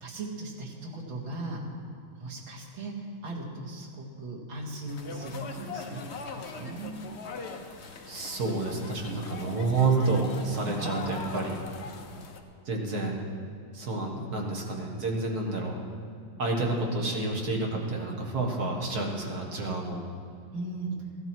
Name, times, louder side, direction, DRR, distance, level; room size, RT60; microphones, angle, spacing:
voice 1, 0.0-1.6 2.2-7.0 9.4-9.7 10.6-10.9 20.5-20.9, right 2 dB, 85° right, -3 dB, 2.8 m, -38 dB
sound 1, 4.9-12.4, left 5 dB, 50° left, 0.8 m, -41 dB
voice 2, 7.7-11.6 12.7-13.2 13.7-15.8 16.4-20.0, right 3 dB, 50° right, 0 dB, 2.0 m, -29 dB
15.5 x 12.5 x 4.5 m, 2.5 s
omnidirectional pair, 2.2 m